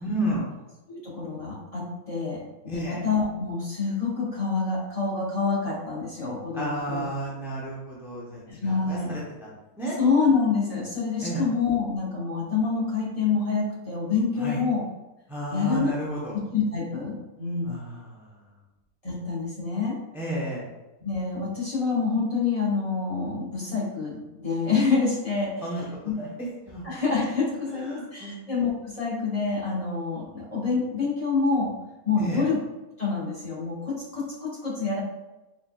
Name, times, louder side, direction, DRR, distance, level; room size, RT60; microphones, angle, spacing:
voice 1, 0.0-0.5 2.7-3.0 6.5-10.0 11.2-11.4 14.4-14.6 15.3-16.3 17.6-18.4 20.1-20.7 25.6-26.3 26.6-26.9 27.7-28.4 32.2-32.5, right 1 dB, 5° right, -6 dB, 0.5 m, -32 dB
voice 2, 0.9-7.1 8.6-9.1 10.0-14.8 15.5-15.9 16.5-17.8 19.0-20.0 21.0-25.5 26.0-26.3 26.8-31.7 32.0-32.6 33.0-35.0, left 4 dB, 25° left, -7 dB, 1.0 m, -27 dB
4.0 x 4.0 x 2.3 m, 1.0 s
omnidirectional pair, 1.6 m